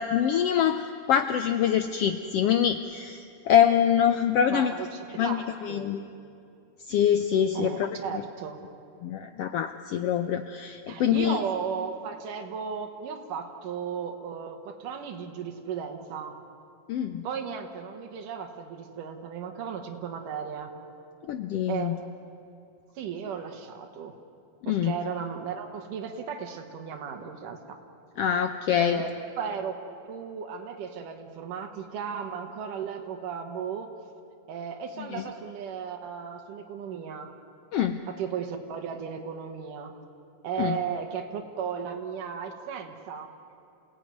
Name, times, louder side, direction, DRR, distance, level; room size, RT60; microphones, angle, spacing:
voice 1, 0.0-4.7 5.2-6.0 6.9-7.9 9.0-11.4 16.9-17.2 21.3-21.9 24.7-24.9 28.2-29.0 35.1-35.2 37.7-38.0 40.6-40.8, left 9 dB, 85° left, 9 dB, 1.3 m, -25 dB
voice 2, 4.5-5.4 5.7-5.9 7.5-8.6 10.9-16.4 17.2-20.7 21.7-21.9 23.0-24.1 24.7-27.8 28.8-29.7 30.1-33.9 34.5-37.3 38.1-39.9 40.4-43.3, right 7 dB, 90° right, 3 dB, 2.9 m, -35 dB
28.5 x 17.5 x 9.4 m, 2.6 s
omnidirectional pair, 3.6 m